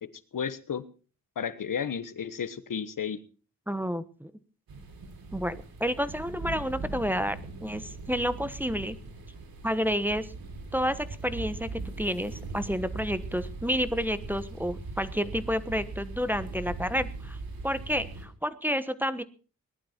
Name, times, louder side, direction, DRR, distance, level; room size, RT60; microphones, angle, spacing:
voice 1, 0.0-0.8 1.4-3.2, left 7 dB, 65° left, 13 dB, 1.3 m, -33 dB
voice 2, 3.7-4.3 5.3-9.0 9.6-10.3 10.7-17.4 17.6-19.2, equal, 5° right, 11 dB, 1.2 m, -30 dB
sound 1, 4.7-18.3, right 3 dB, 90° right, 3.3 m, -40 dB
19.0 x 12.0 x 4.4 m, 0.38 s
cardioid pair, 65°, 35 cm